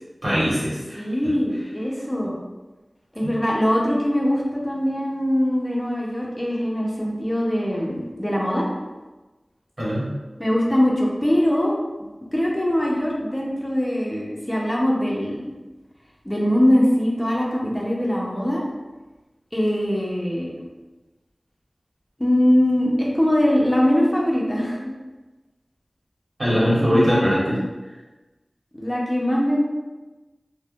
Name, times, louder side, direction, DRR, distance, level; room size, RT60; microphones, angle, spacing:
voice 1, 0.2-1.0 3.2-3.3 9.8-10.1 26.4-27.6, equal, 55° right, -9 dB, 1.2 m, -21 dB
voice 2, 1.0-2.4 3.2-8.7 10.4-11.7 12.3-15.4 16.2-18.6 19.5-20.6 22.2-24.8 26.9-27.4 28.7-29.6, equal, 15° left, -3 dB, 0.6 m, -22 dB
3.3 x 2.0 x 2.3 m, 1.2 s
wide cardioid pair, 60°, 0 cm